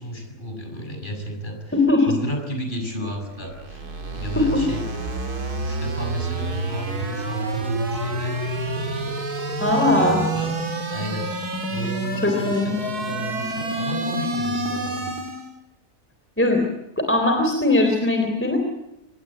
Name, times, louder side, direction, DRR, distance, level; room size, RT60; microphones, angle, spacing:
voice 1, 0.0-1.8 2.1-5.1 5.6-8.4 8.9-9.1 9.9-10.6 10.9-15.2, equal, 30° left, 4 dB, 6.8 m, -33 dB
voice 2, 1.7-2.1 4.4-4.5 9.6-10.2 12.2-12.7 16.4-16.6 17.1-18.6, left 2 dB, 10° left, 3 dB, 3.6 m, -19 dB
sound 1, 3.3-15.5, right 2 dB, 85° right, 3.3 m, -28 dB
26.0 x 21.0 x 8.7 m, 0.91 s
omnidirectional pair, 1.6 m